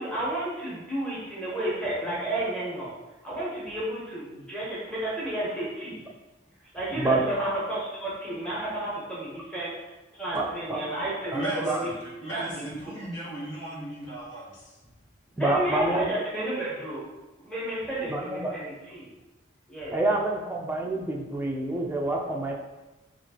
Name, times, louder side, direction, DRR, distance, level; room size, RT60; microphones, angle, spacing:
voice 1, 0.0-2.9 3.2-6.0 6.7-9.7 10.1-11.9 12.2-13.0 15.3-17.0 17.4-19.1 19.7-20.0, right 1 dB, 5° left, -9 dB, 0.9 m, -32 dB
voice 2, 10.3-10.8 11.3-11.8 15.4-16.1 18.1-18.5 19.9-22.5, right 2 dB, 10° right, -1 dB, 0.3 m, -27 dB
voice 3, 11.3-14.7, right 1 dB, 70° left, -7 dB, 1.3 m, -35 dB
4.1 x 2.5 x 2.8 m, 1.1 s
head